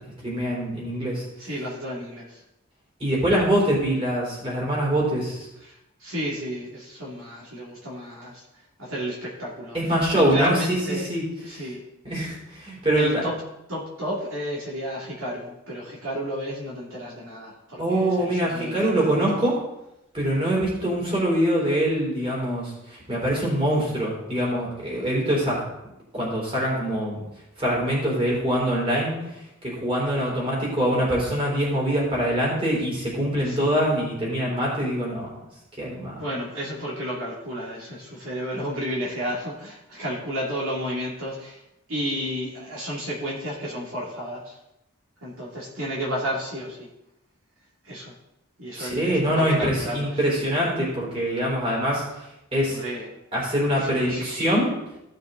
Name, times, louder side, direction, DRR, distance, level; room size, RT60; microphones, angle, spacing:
voice 1, 0.2-1.2 3.0-5.5 9.7-11.2 11.5-11.6 12.0-13.2 17.8-19.6 20.1-25.6 26.1-27.2 27.6-29.2 29.6-35.3 35.8-36.1 48.7-52.3 52.5-52.8 53.3-54.7, equal, 25° right, -5 dB, 4.1 m, -24 dB
voice 2, 1.4-2.4 5.6-8.4 8.8-9.8 10.1-11.1 11.4-11.8 12.9-13.3 13.7-19.4 33.4-33.9 36.2-41.6 41.9-44.6 45.2-46.9 47.8-48.1 48.6-50.3 52.7-53.2 53.8-54.3, equal, 80° right, -4 dB, 2.6 m, -32 dB
15.0 x 6.6 x 3.9 m, 0.88 s
head